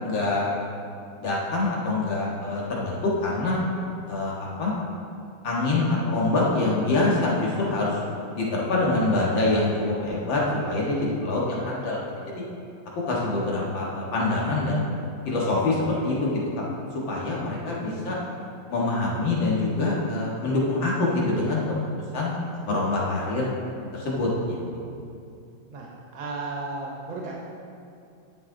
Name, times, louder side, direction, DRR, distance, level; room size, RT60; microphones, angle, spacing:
voice 1, 0.0-0.5 1.2-3.6 4.1-4.7 5.4-8.0 8.4-12.0 12.4-12.5 13.1-14.8 15.3-16.7 17.1-18.2 18.7-21.6 22.1-22.3 22.7-23.5 23.9-24.9, left 2 dB, 80° left, -4 dB, 2.4 m, -25 dB
voice 2, 17.8-18.2 22.3-22.4 22.6-22.8 25.7-27.3, right 3 dB, 90° right, -2 dB, 1.9 m, -35 dB
11.0 x 7.3 x 3.8 m, 2.5 s
omnidirectional pair, 2.1 m